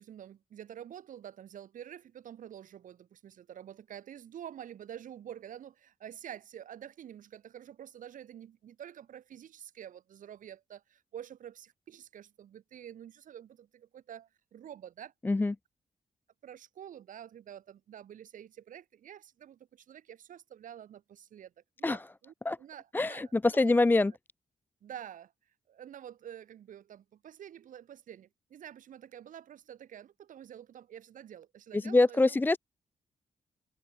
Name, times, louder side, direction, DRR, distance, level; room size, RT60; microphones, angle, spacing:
voice 1, 0.0-15.1 16.4-21.5 21.8-24.0 24.8-25.3 25.7-32.4, right 10 dB, 80° right, 4.3 m, -48 dB
voice 2, 22.9-24.1 31.7-32.6, left 2 dB, 15° left, 0.5 m, -25 dB
wide cardioid pair, 135°, 13 cm